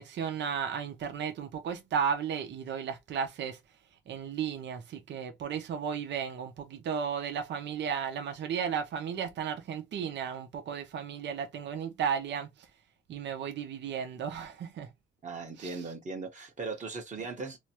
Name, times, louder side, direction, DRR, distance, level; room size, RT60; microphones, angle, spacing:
voice 1, 0.0-3.6 4.1-12.7 13.1-14.9 15.6-15.8, right 7 dB, 65° right, 0.7 m, -34 dB
voice 2, 15.2-17.6, right 4 dB, 40° right, 1.2 m, -38 dB
3.1 x 2.1 x 2.8 m
cardioid pair, 90°, 20 cm